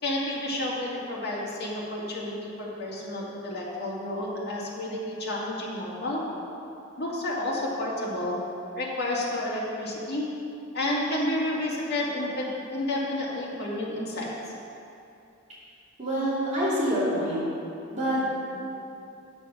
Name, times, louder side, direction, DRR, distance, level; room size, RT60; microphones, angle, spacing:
voice 1, 0.0-6.2 7.0-8.4 8.8-10.3 10.7-14.5, left 1 dB, 55° left, -5 dB, 2.2 m, -30 dB
voice 2, 16.0-17.5 17.9-18.4, equal, 35° right, -8 dB, 2.4 m, -26 dB
9.4 x 6.8 x 6.1 m, 2.7 s
head